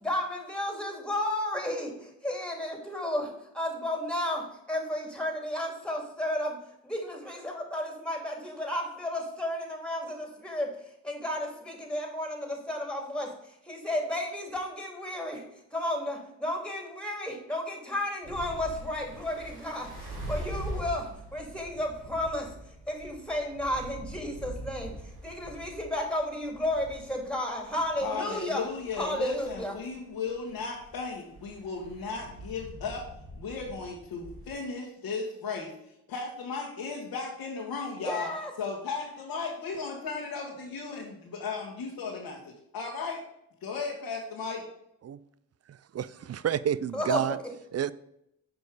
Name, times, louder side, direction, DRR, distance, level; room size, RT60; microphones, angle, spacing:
voice 1, 0.0-6.6 6.8-10.8 11.0-13.3 13.7-15.4 15.7-22.5 22.9-24.9 25.2-28.6 29.0-29.7 38.0-38.5 46.9-47.3, left 1 dB, ahead, 2 dB, 2.6 m, -33 dB
sound 1, 18.2-34.5, right 1 dB, 80° right, 2.4 m, -43 dB
voice 2, 28.0-33.0 33.4-35.7 36.1-38.3 38.6-43.2 43.6-44.6, left 4 dB, 75° left, -2 dB, 1.5 m, -35 dB
voice 3, 45.7-47.4 47.7-47.9, right 9 dB, 40° right, 17 dB, 0.5 m, -30 dB
6.4 x 5.2 x 4.8 m, 0.78 s
supercardioid pair, 45°, 39 cm